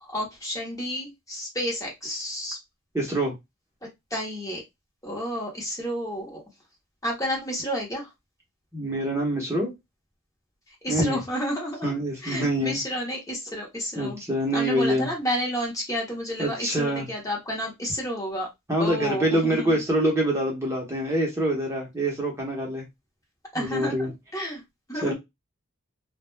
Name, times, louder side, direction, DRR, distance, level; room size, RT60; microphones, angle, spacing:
voice 1, 0.0-2.6 3.8-4.6 5.0-6.4 7.0-8.1 10.8-11.9 12.2-14.2 14.5-18.5 18.8-19.8 23.5-24.6 24.9-25.1, equal, 15° left, -2 dB, 0.8 m, -30 dB
voice 2, 2.9-3.3 8.7-9.7 10.9-11.2 11.8-12.8 14.0-15.1 16.4-17.1 18.7-22.8 23.5-24.1 25.0-25.1, right 1 dB, 15° right, -2 dB, 0.8 m, -25 dB
2.3 x 2.1 x 3.1 m, 0.19 s
head